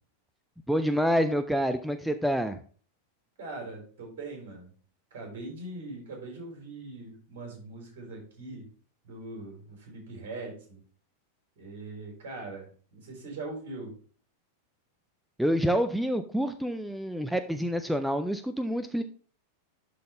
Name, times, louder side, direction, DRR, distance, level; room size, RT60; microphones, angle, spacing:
voice 1, 0.7-2.6 15.4-19.0, equal, ahead, 10 dB, 0.4 m, -27 dB
voice 2, 3.4-4.7 5.1-8.6 9.0-10.8 11.6-13.9, right 2 dB, 55° right, 1 dB, 3.8 m, -41 dB
11.5 x 4.1 x 3.3 m, 0.43 s
figure-of-eight pair, 90°, 0 cm